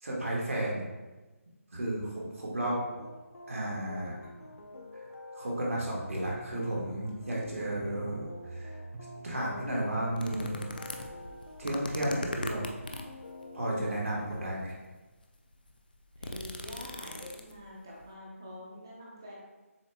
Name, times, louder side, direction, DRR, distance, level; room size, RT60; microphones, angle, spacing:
voice 1, 0.0-0.9 1.7-2.8 3.5-4.2 5.3-8.2 8.5-8.8 9.2-10.6 11.6-12.6 13.5-14.7, right 1 dB, 65° right, -4 dB, 1.4 m, -33 dB
sound 1, 2.6-13.9, left 1 dB, 70° left, 0.7 m, -48 dB
sound 2, 5.8-11.1, right 3 dB, 85° right, 0.5 m, -47 dB
sound 3, 10.2-13.2 14.0-14.6 15.1-15.2 15.5-17.7 18.0-18.1, left 2 dB, 35° left, 0.3 m, -40 dB
voice 2, 16.2-19.4, equal, 15° right, -4 dB, 0.7 m, -46 dB
7.0 x 3.0 x 2.2 m, 1.2 s
figure-of-eight pair, 180°, 8 cm